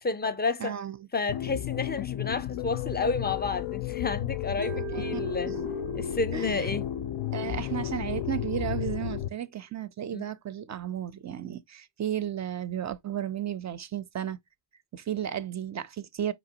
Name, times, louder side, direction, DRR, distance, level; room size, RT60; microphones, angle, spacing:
voice 1, 0.0-0.7 1.1-5.5 5.9-6.8 10.1-10.2, left 3 dB, 20° left, 0.5 m, -30 dB
voice 2, 0.6-1.0 4.9-5.6 6.3-6.7 7.3-14.4 14.9-16.3, right 10 dB, 40° right, 0.4 m, -34 dB
sound 1, 1.3-9.3, left 11 dB, 70° left, 0.5 m, -33 dB
Mallet percussion, 4.6-8.7, right 23 dB, 90° right, 0.6 m, -42 dB
4.6 x 2.9 x 2.7 m
cardioid pair, 80°, 46 cm